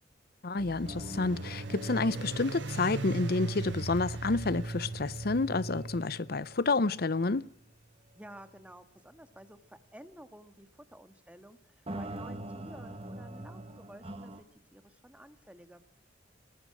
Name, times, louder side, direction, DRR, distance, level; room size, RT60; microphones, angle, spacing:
voice 1, 0.4-7.5, left 3 dB, 55° left, 0.7 m, -29 dB
sound 1, 0.6-6.0, right 3 dB, 70° right, 0.8 m, -41 dB
sound 2, 0.8-7.4 7.7-7.8 8.4-8.5 11.9-14.4, right 2 dB, 30° right, 1.5 m, -41 dB
voice 2, 8.1-15.8, right 1 dB, 5° right, 1.6 m, -52 dB
21.5 x 20.0 x 6.2 m
head